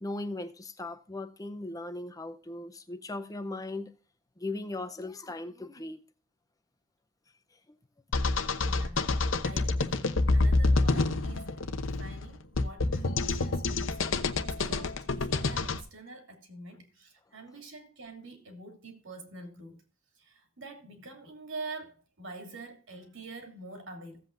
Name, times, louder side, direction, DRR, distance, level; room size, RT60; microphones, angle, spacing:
voice 1, 0.0-3.9 4.4-6.0, left 2 dB, 15° left, 0.6 m, -38 dB
sound 1, 8.1-15.8, left 3 dB, 70° left, 0.9 m, -27 dB
voice 2, 8.6-9.1 9.4-14.0 14.3-19.8 20.2-24.2, right 2 dB, 70° right, 2.7 m, -46 dB
16.0 x 7.9 x 2.5 m
head